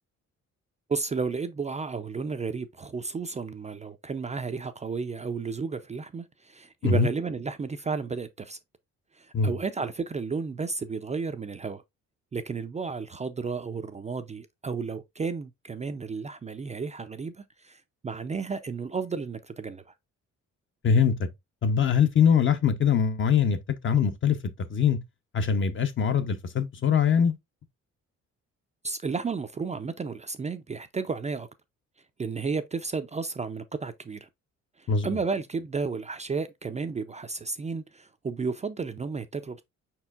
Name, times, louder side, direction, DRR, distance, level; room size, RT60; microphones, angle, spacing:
voice 1, 0.9-8.6 9.2-11.8 12.3-19.8 28.8-31.5 32.2-34.3 34.8-39.6, right 4 dB, 25° right, 0.4 m, -33 dB
voice 2, 20.8-21.3 21.6-23.6 23.8-24.4 24.7-25.0 25.3-27.3 34.9-35.1, left 7 dB, 40° left, 0.7 m, -22 dB
5.1 x 4.4 x 2.3 m
cardioid pair, 90°, 30 cm